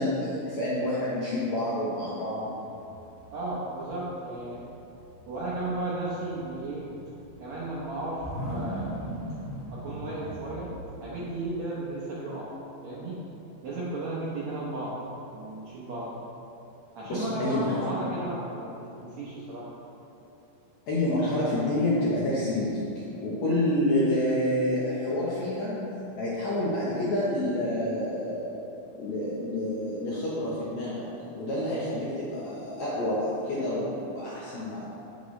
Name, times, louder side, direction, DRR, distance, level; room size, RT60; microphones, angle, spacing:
voice 1, 0.0-2.5 17.1-17.8 20.9-28.6 29.0-34.8, left 1 dB, 65° left, -7 dB, 1.8 m, -28 dB
sound 1, 2.4-3.9 4.2-11.2, equal, 85° left, 3.8 m, -40 dB
voice 2, 3.3-4.7 5.3-6.9 7.4-8.9 9.7-10.7 11.0-12.5 12.8-13.2 13.6-15.0 15.3-16.1 17.0-18.7 19.0-19.7, right 2 dB, 70° right, -8 dB, 1.7 m, -34 dB
8.7 x 8.0 x 3.2 m, 2.9 s
omnidirectional pair, 4.4 m